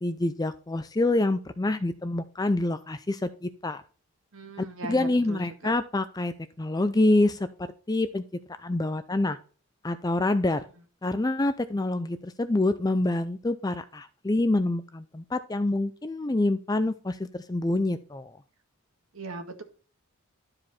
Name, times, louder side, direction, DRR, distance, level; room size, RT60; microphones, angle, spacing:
voice 1, 0.0-3.8 4.6-7.5 7.9-8.2 8.6-9.4 9.8-10.6 11.0-18.4, left 2 dB, 15° left, 12 dB, 0.4 m, -26 dB
voice 2, 4.3-5.7 10.5-10.6 19.1-19.6, right 2 dB, 65° right, 5 dB, 1.9 m, -39 dB
12.0 x 4.9 x 4.2 m, 0.38 s
head